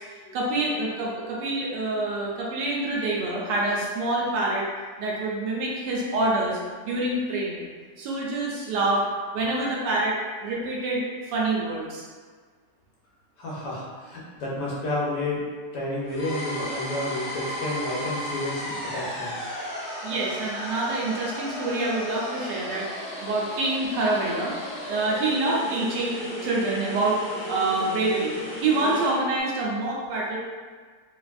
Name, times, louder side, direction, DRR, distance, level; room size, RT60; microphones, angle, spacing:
voice 1, 0.3-4.7 5.0-6.6 6.8-7.7 8.0-9.0 9.3-12.0 20.0-30.4, right 2 dB, 85° right, -4 dB, 1.3 m, -26 dB
voice 2, 13.4-15.4 15.7-19.5, left 1 dB, 75° left, -5 dB, 1.3 m, -31 dB
sound 1, 16.1-29.3, equal, 50° left, 0.7 m, -35 dB
3.2 x 2.5 x 2.3 m, 1.5 s
omnidirectional pair, 1.8 m